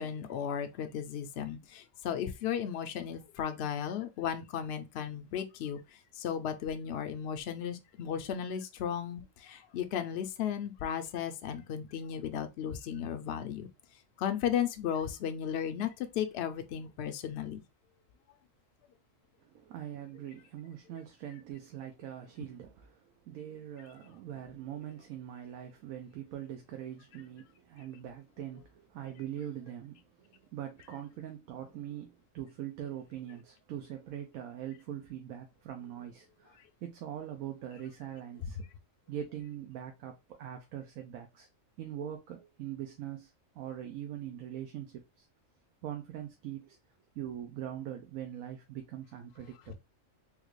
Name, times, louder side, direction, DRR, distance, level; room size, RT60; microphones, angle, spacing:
voice 1, 0.0-13.7 14.2-17.6, left 8 dB, 65° left, 0.7 m, -35 dB
voice 2, 19.4-38.7 39.1-41.5 41.8-45.3 45.8-46.8 47.1-49.8, right 10 dB, 85° right, 1.1 m, -42 dB
3.7 x 2.4 x 3.0 m
omnidirectional pair, 1.4 m